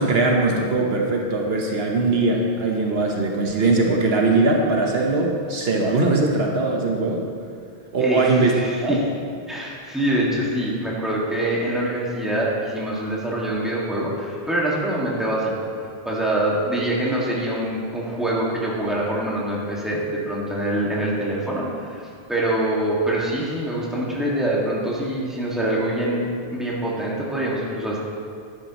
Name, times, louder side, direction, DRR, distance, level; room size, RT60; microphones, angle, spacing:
voice 1, 0.0-7.3 7.9-8.6 8.8-9.0, right 3 dB, 75° right, 0 dB, 1.3 m, -20 dB
voice 2, 8.5-9.0 9.5-15.5 16.1-22.0 22.3-28.0, right 1 dB, ahead, -6 dB, 1.8 m, -24 dB
11.0 x 10.5 x 3.0 m, 2.2 s
omnidirectional pair, 1.0 m